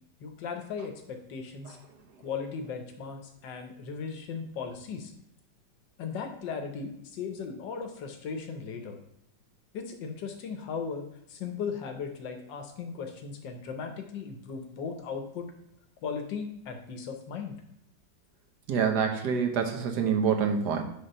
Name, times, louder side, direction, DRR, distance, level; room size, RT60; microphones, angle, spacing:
voice 1, 0.2-1.8 2.2-5.1 6.0-9.0 9.7-11.0 11.3-15.5 16.0-17.6, left 5 dB, 80° left, 5 dB, 1.6 m, -37 dB
voice 2, 18.7-20.8, right 6 dB, 70° right, 4 dB, 1.5 m, -26 dB
8.8 x 3.6 x 5.5 m, 0.78 s
omnidirectional pair, 1.9 m